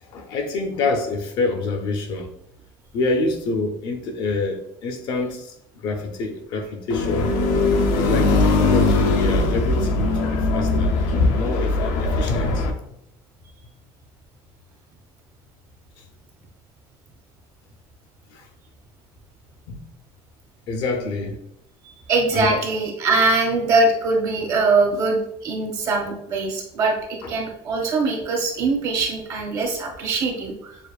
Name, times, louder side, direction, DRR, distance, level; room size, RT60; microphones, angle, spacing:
voice 1, 0.0-2.3 2.9-7.3 8.0-11.0 11.3-12.7 16.0-16.1 18.3-18.5 19.7-19.8 20.7-21.4 22.3-22.6 27.2-27.3, left 2 dB, 45° left, 0.6 m, -27 dB
sound 1, 6.9-12.7, left 3 dB, 85° left, 0.6 m, -20 dB
voice 2, 21.8-30.8, right 3 dB, 35° right, 0.9 m, -22 dB
6.8 x 2.4 x 2.4 m
cardioid pair, 175°, 10 cm